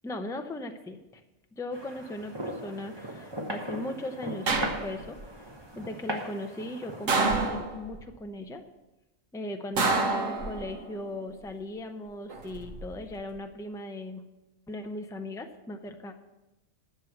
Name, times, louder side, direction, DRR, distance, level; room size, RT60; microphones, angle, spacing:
voice 1, 0.0-1.2 1.5-4.6 4.8-5.5 5.7-8.6 9.3-14.2 14.7-16.1, left 1 dB, 5° left, 6 dB, 0.5 m, -38 dB
sound 1, 1.7-7.1, equal, 20° right, 1.2 m, -38 dB
sound 2, 4.5-5.2 7.1-8.0 9.8-10.9 12.3-12.8, right 3 dB, 90° right, 1.6 m, -28 dB
11.0 x 7.2 x 7.1 m, 1.0 s
omnidirectional pair, 1.3 m